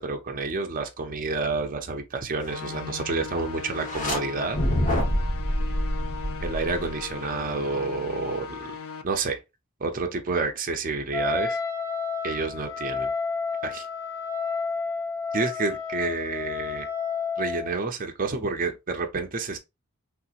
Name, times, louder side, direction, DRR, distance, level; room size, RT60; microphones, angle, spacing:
voice 1, 0.0-4.6 6.4-8.7 9.0-9.4 9.8-11.6 12.2-13.1 13.6-13.9 15.3-16.9 17.4-19.6, right 3 dB, 40° right, 0.6 m, -29 dB
sound 1, 2.4-9.0, left 6 dB, 65° left, 0.4 m, -38 dB
sound 2, 3.7-4.2 4.5-7.1, equal, 35° left, 1.0 m, -26 dB
Wind instrument woodwind instrument, 11.1-17.7, left 5 dB, 15° left, 0.7 m, -30 dB
3.6 x 2.8 x 2.4 m
head